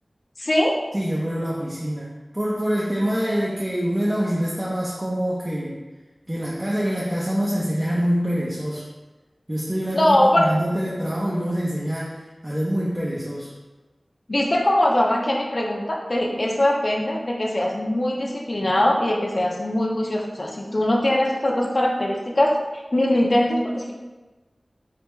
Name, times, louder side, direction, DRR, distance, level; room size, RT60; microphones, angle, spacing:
voice 1, 0.4-0.8 9.9-10.5 14.3-22.6 22.9-23.9, left 1 dB, 45° left, 0 dB, 0.5 m, -21 dB
voice 2, 0.9-5.8 6.3-8.8 9.5-13.5, equal, 20° right, -5 dB, 0.6 m, -25 dB
3.4 x 3.3 x 3.1 m, 1.2 s
wide cardioid pair, 55°, 0 cm